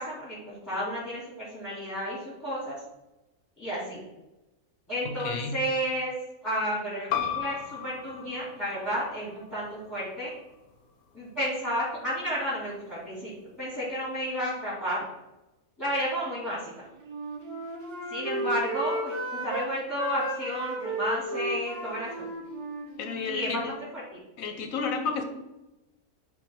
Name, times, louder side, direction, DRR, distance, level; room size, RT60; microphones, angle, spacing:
voice 1, 0.0-2.8 3.6-4.0 4.9-6.1 6.4-10.3 11.1-13.3 13.6-15.1 15.8-16.7 18.1-22.3 23.3-23.8 24.1-24.2, equal, 10° left, -9 dB, 2.4 m, -32 dB
voice 2, 5.0-5.6 23.0-23.7 24.4-25.2, left 5 dB, 65° left, 5 dB, 1.3 m, -31 dB
sound 1, 7.1-12.3, left 9 dB, 85° left, 1.2 m, -37 dB
Wind instrument woodwind instrument, 17.0-19.7 20.0-23.6, right 2 dB, 90° right, 1.8 m, -34 dB
9.0 x 3.7 x 3.5 m, 0.99 s
omnidirectional pair, 1.6 m